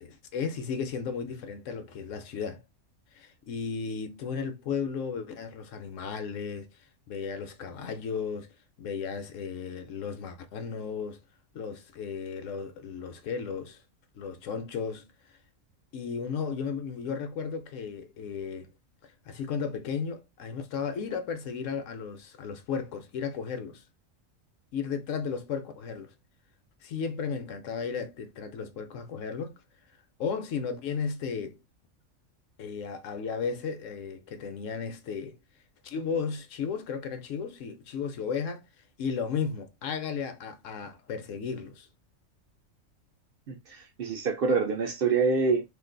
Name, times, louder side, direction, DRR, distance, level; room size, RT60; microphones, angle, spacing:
voice 1, 0.0-2.6 3.1-6.7 7.1-8.5 8.8-11.2 11.5-13.8 14.1-15.1 15.9-18.7 19.0-23.8 24.7-26.1 26.8-29.6 30.2-31.6 32.6-35.4 35.8-38.7 39.0-41.9, left 6 dB, 70° left, 1.0 m, -34 dB
voice 2, 43.5-45.6, right 4 dB, 65° right, 0.6 m, -26 dB
2.6 x 2.5 x 3.7 m
omnidirectional pair, 1.4 m